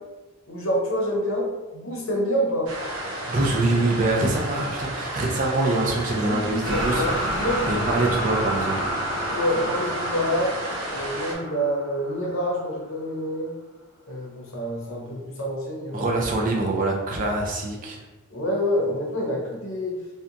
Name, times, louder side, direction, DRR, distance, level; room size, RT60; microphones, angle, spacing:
voice 1, 0.5-1.5 1.7-2.7 6.2-7.9 9.3-10.6 10.9-13.5 14.1-16.1 18.3-20.0, equal, 70° left, -2 dB, 0.7 m, -27 dB
sound 1, 2.7-11.3, right 1 dB, 85° right, 0.6 m, -32 dB
voice 2, 3.3-7.1 7.7-8.8 15.9-18.0, right 2 dB, 35° right, -1 dB, 0.3 m, -24 dB
sound 2, 6.6-12.7, equal, 10° left, 0.7 m, -30 dB
2.7 x 2.2 x 2.5 m, 1.1 s
head